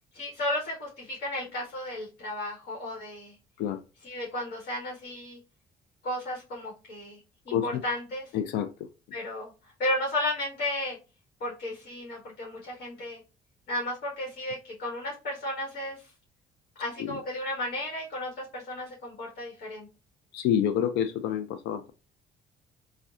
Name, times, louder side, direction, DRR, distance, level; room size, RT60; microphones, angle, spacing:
voice 1, 0.1-3.3 4.0-5.4 6.0-7.2 7.4-8.3 9.1-9.5 9.8-11.0 11.4-13.2 13.7-16.1 16.8-19.9, left 1 dB, 60° left, 1.4 m, -33 dB
voice 2, 7.5-7.8 8.3-8.7 17.0-17.2 20.3-21.9, left 9 dB, 80° left, 0.4 m, -28 dB
3.5 x 2.2 x 2.4 m
cardioid pair, 110°, 17 cm